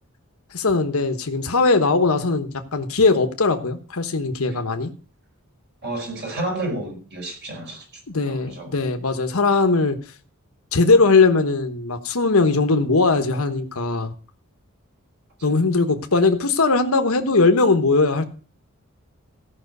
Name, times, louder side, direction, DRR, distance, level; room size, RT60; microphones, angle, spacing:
voice 1, 0.5-4.9 8.1-10.0 10.7-14.1 15.4-18.2, left 3 dB, 80° left, 1.2 m, -19 dB
voice 2, 5.8-7.8 8.1-8.7, right 1 dB, 50° right, 4.8 m, -30 dB
15.0 x 5.9 x 6.6 m
head